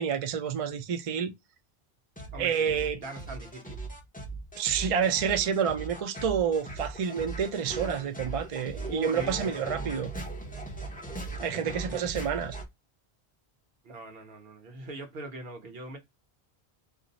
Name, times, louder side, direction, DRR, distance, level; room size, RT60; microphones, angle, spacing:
voice 1, 0.0-1.3 2.4-3.0 4.6-10.1 11.4-12.6, right 7 dB, 50° right, 0.4 m, -29 dB
sound 1, 2.2-12.6, right 2 dB, 10° left, 0.4 m, -39 dB
voice 2, 2.3-3.8 8.7-9.4 11.5-12.0 13.8-16.0, right 2 dB, 70° right, 1.0 m, -42 dB
2.6 x 2.0 x 3.9 m
omnidirectional pair, 1.0 m